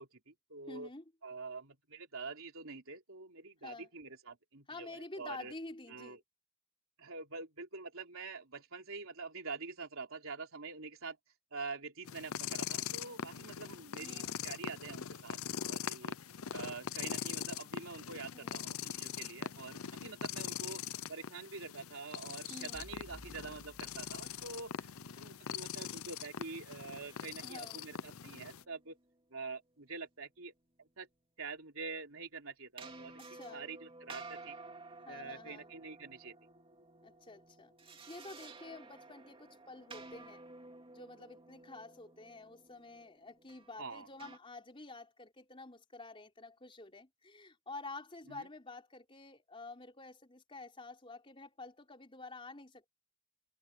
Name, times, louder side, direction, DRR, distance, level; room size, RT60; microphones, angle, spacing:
voice 1, 0.0-0.9 1.2-5.5 5.9-6.2 7.0-11.2 11.5-16.2 16.5-20.8 21.1-29.0 29.3-30.5 30.8-31.1 31.4-33.1 33.5-34.6 35.1-36.3 43.8-44.1 48.3-48.5, right 4 dB, 70° right, 3.8 m, -46 dB
voice 2, 0.7-1.0 3.6-3.9 4.7-6.2 14.0-14.4 18.3-18.7 22.5-22.8 27.4-27.8 33.2-33.6 35.1-35.7 37.0-40.4 40.9-52.9, left 2 dB, 25° left, 4.1 m, -49 dB
sound 1, 12.0-28.6, left 8 dB, 80° left, 0.7 m, -42 dB
sound 2, 22.7-25.0, equal, 5° left, 3.7 m, -56 dB
sound 3, 27.0-29.1 32.8-44.4, right 3 dB, 25° right, 2.7 m, -53 dB
head